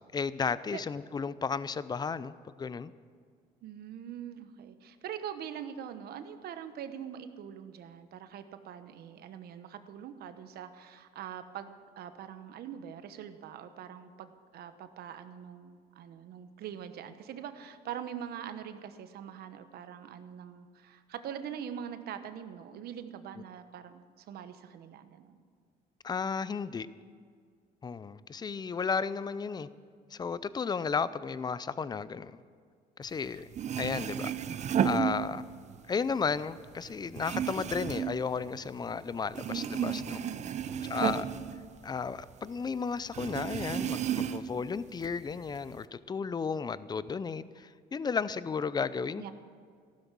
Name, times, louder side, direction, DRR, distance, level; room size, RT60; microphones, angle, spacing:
voice 1, 0.1-2.3 2.6-2.9 26.0-26.9 27.8-29.7 30.1-32.4 33.0-33.5 33.8-34.3 34.8-35.4 35.9-40.2 40.8-41.3 41.8-49.3, left 5 dB, 25° left, 16 dB, 0.5 m, -33 dB
voice 2, 3.6-25.4 33.1-33.4 40.2-41.2 49.2-49.3, right 9 dB, 65° right, 10 dB, 1.1 m, -43 dB
sound 1, 33.3-33.4 33.5-35.8 36.1-39.0 39.3-42.3 42.6-42.7 43.1-44.6 45.0-45.8, right 9 dB, 45° right, 0.7 m, -33 dB
14.5 x 12.5 x 6.2 m, 2.1 s
cardioid pair, 110°, 17 cm